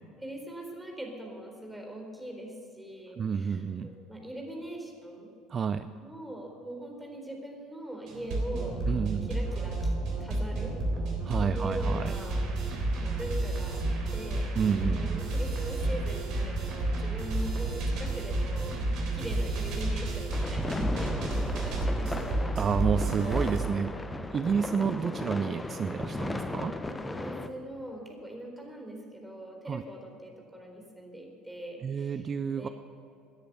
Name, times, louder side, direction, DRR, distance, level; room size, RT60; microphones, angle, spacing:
voice 1, 0.2-5.3 6.0-9.9 10.2-10.7 11.4-12.5 13.0-13.8 14.1-14.5 14.8-22.4 27.0-32.3 32.6-32.7, right 1 dB, 5° right, 1 dB, 4.1 m, -41 dB
voice 2, 3.2-3.9 5.5-5.9 8.9-9.3 11.2-12.1 14.6-15.2 22.6-23.9 24.3-26.8 29.7-29.8 31.8-32.7, right 6 dB, 35° right, 11 dB, 0.5 m, -30 dB
sound 1, 8.1-23.6, right 2 dB, 55° right, 3.6 m, -31 dB
sound 2, 20.3-27.5, left 2 dB, 15° left, 1.1 m, -36 dB
18.5 x 10.0 x 6.9 m, 2.8 s
figure-of-eight pair, 65°, 0 cm